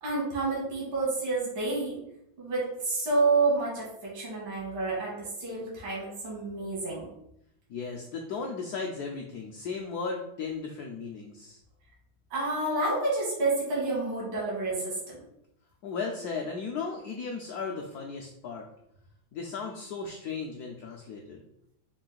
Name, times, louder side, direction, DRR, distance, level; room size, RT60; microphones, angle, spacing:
voice 1, 0.0-2.0 2.4-7.1 12.3-15.2, right 3 dB, 80° right, -5 dB, 2.2 m, -29 dB
voice 2, 7.7-11.6 15.8-18.7 19.3-21.4, left 4 dB, 80° left, 0 dB, 0.9 m, -36 dB
4.6 x 2.5 x 3.8 m, 0.78 s
omnidirectional pair, 2.2 m